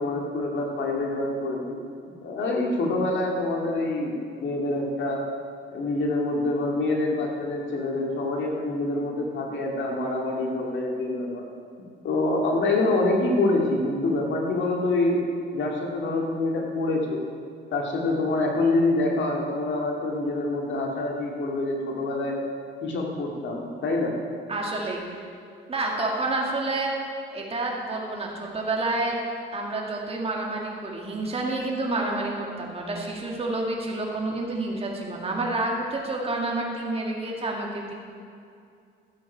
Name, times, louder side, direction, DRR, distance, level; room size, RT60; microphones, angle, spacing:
voice 1, 0.0-1.8 2.2-4.1 4.4-5.2 5.7-11.5 12.0-15.2 15.5-17.2 17.7-22.4 22.8-24.1, left 2 dB, 70° left, 0 dB, 2.3 m, -26 dB
voice 2, 24.5-25.2 25.7-26.9 27.3-29.2 29.5-37.9, right 2 dB, 30° right, -1 dB, 2.3 m, -29 dB
13.0 x 7.8 x 5.6 m, 2.4 s
cardioid pair, 90°, 20 cm